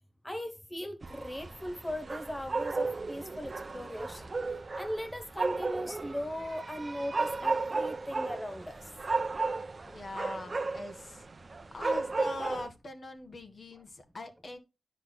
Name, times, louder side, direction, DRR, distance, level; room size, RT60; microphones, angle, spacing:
voice 1, 0.2-4.3 4.8-8.8 9.2-9.3 9.9-10.0, equal, 10° left, 0.9 m, -38 dB
sound 1, 1.0-12.7, right 3 dB, 40° right, 0.7 m, -34 dB
voice 2, 9.8-11.2 11.7-14.6, left 2 dB, 55° left, 1.5 m, -42 dB
10.0 x 5.9 x 2.2 m
wide cardioid pair, 80°, 0 cm